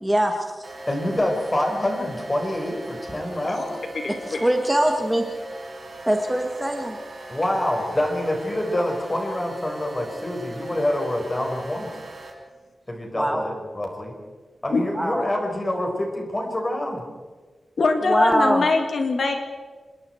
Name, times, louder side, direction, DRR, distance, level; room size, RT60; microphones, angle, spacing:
voice 1, 0.0-0.7 4.3-5.2 6.1-7.0 13.1-13.4 14.9-15.3 18.1-18.6, right 1 dB, 5° right, 3 dB, 1.6 m, -22 dB
sound 1, 0.6-12.3, right 1 dB, 45° right, 5.1 m, -39 dB
voice 2, 0.9-3.8 7.3-11.9 12.9-14.2 14.6-17.0, left 1 dB, 20° left, 2 dB, 4.7 m, -26 dB
voice 3, 4.0-4.5 14.7-14.9 17.8-19.3, left 3 dB, 60° left, 4 dB, 2.2 m, -22 dB
26.5 x 21.5 x 4.6 m, 1.4 s
wide cardioid pair, 160°, 0 cm